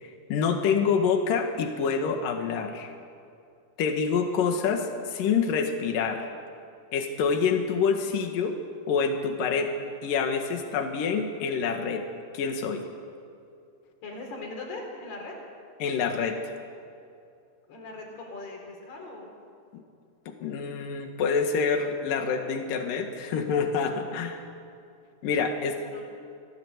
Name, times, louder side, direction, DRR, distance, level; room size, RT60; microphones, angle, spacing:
voice 1, 0.0-2.9 3.8-6.3 6.9-8.6 8.9-9.7 10.0-12.0 12.3-12.8 15.8-16.5 19.7-19.8 20.3-24.4 25.2-25.8, left 5 dB, 60° left, 4 dB, 3.2 m, -27 dB
voice 2, 14.0-15.4 17.7-19.3 25.9-26.0, left 2 dB, 80° left, 0 dB, 6.3 m, -39 dB
26.5 x 16.5 x 8.2 m, 2.5 s
omnidirectional pair, 4.6 m